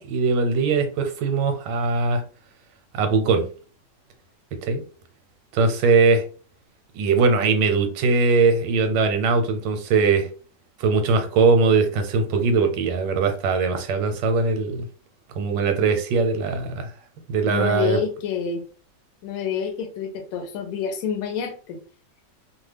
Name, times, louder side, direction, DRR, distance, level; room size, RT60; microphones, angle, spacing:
voice 1, 0.0-2.2 2.9-3.5 4.6-4.8 5.5-6.2 6.9-10.3 10.8-14.9 15.4-16.9 17.3-18.0, right 4 dB, 90° right, 1.3 m, -20 dB
voice 2, 17.5-18.6 19.2-21.8, left 7 dB, 65° left, 0.9 m, -28 dB
2.8 x 2.3 x 3.2 m
omnidirectional pair, 1.9 m